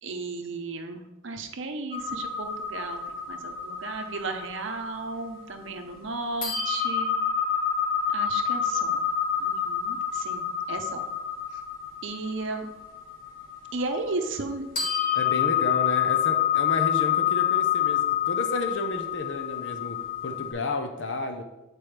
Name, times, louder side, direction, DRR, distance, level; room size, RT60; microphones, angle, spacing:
voice 1, 0.0-7.1 8.1-9.0 9.4-11.1 11.5-11.6 12.0-12.7 13.7-14.7, right 3 dB, 70° right, 5 dB, 0.7 m, -34 dB
sound 1, 1.9-6.0 6.4-14.5 14.8-20.5, left 8 dB, 45° left, 1.5 m, -28 dB
voice 2, 15.1-21.4, left 2 dB, 65° left, 6 dB, 0.6 m, -32 dB
8.7 x 4.5 x 3.3 m, 1.0 s
head